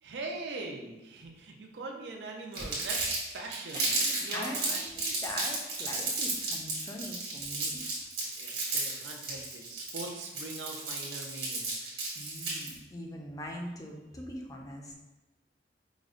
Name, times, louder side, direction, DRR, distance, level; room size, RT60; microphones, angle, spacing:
voice 1, 0.0-5.2 8.4-11.9, right 3 dB, 80° right, 1 dB, 0.5 m, -42 dB
Crumpling crinkling, 2.5-12.7, right 3 dB, 60° right, 1.3 m, -33 dB
voice 2, 3.7-7.8 12.1-14.9, left 1 dB, 20° left, 0 dB, 0.4 m, -42 dB
4.9 x 2.1 x 2.4 m, 1.0 s
head